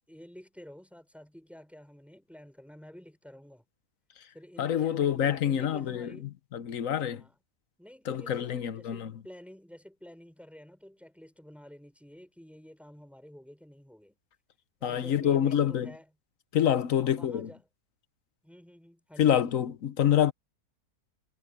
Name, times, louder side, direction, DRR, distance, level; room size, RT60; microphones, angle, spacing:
voice 1, 0.1-3.6 4.3-6.3 7.1-7.3 7.8-14.2 14.8-16.1 16.9-17.7 18.4-19.6, equal, ahead, 5.0 m, -50 dB
voice 2, 4.6-6.1 6.5-7.2 8.1-9.1 14.8-15.9 16.5-17.5 19.2-20.3, left 9 dB, 65° left, 1.2 m, -26 dB
omnidirectional pair, 1.6 m